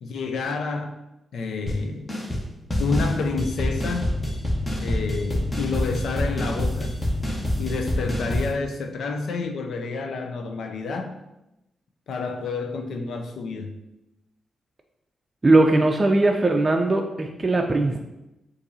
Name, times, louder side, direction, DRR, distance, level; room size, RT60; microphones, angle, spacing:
voice 1, 0.0-1.0 1.3-2.1 2.8-4.2 4.8-7.0 7.6-11.1 12.1-13.7, left 4 dB, 75° left, 5 dB, 0.5 m, -29 dB
sound 1, 1.7-1.8 2.1-2.4 2.7-8.5, left 1 dB, 25° left, 1.1 m, -26 dB
voice 2, 15.4-18.0, right 2 dB, 35° right, 2 dB, 0.4 m, -19 dB
6.5 x 2.6 x 2.7 m, 0.92 s
supercardioid pair, 50°, 0 cm